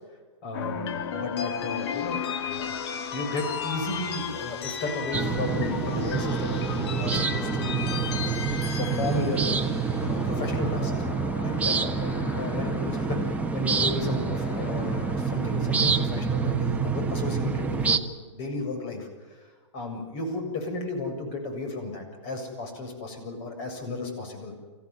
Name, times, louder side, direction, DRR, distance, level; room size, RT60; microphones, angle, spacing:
voice 1, 0.4-2.8 3.1-8.3 8.8-9.7 10.0-18.1 18.3-24.5, left 2 dB, 40° left, 5 dB, 7.3 m, -34 dB
sound 1, 0.5-16.7, left 7 dB, 60° left, 2.1 m, -35 dB
sound 2, 5.1-18.0, right 5 dB, 10° right, 1.5 m, -27 dB
27.5 x 15.5 x 9.7 m, 1.4 s
hypercardioid pair, 125°, 15 cm